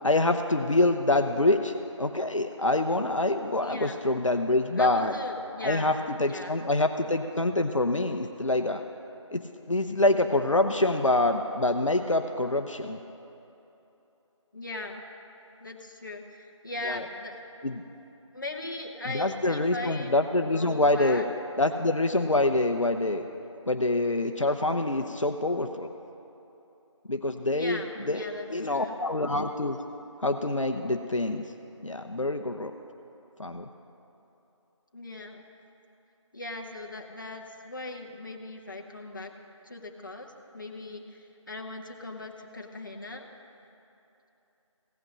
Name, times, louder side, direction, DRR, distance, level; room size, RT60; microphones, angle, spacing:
voice 1, 0.0-5.1 5.6-8.8 9.3-13.0 16.8-17.1 17.6-17.8 19.1-21.2 21.6-23.2 23.7-25.9 27.1-28.2 28.5-29.8 30.2-31.4 31.8-32.7 33.4-33.7, left 2 dB, 80° left, 6 dB, 0.8 m, -26 dB
voice 2, 3.6-4.0 4.8-5.9 6.2-6.6 14.5-15.0 15.6-17.4 18.3-21.2 27.5-28.9 34.9-35.5 36.3-39.3 39.6-43.3, left 2 dB, 40° left, 1 dB, 1.0 m, -39 dB
16.0 x 5.9 x 7.7 m, 3.0 s
figure-of-eight pair, 165°, 16 cm